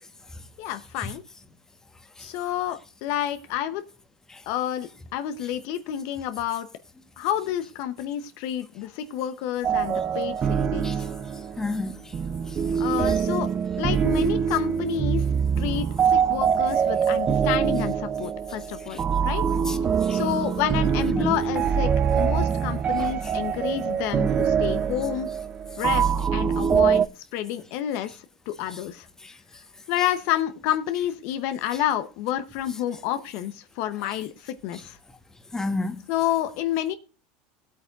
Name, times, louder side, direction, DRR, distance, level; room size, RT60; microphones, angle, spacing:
voice 1, 0.6-1.2 2.2-3.8 4.5-6.7 7.2-11.0 12.8-13.5 13.8-15.2 15.6-19.5 20.1-21.9 22.2-25.3 25.8-27.0 27.3-28.2 28.5-29.1 29.9-35.0 36.1-36.9, left 11 dB, 65° left, 0.8 m, -29 dB
sound 1, 9.6-27.1, right 7 dB, 30° right, 0.5 m, -24 dB
voice 2, 11.6-12.1 12.5-12.6 13.1-13.2 15.4-15.5 18.9-19.0 19.7-20.2 21.1-21.3 23.0-23.3 29.2-29.3 35.5-36.0, left 2 dB, 10° left, 1.2 m, -32 dB
17.0 x 8.5 x 2.4 m
supercardioid pair, 115°, 4 cm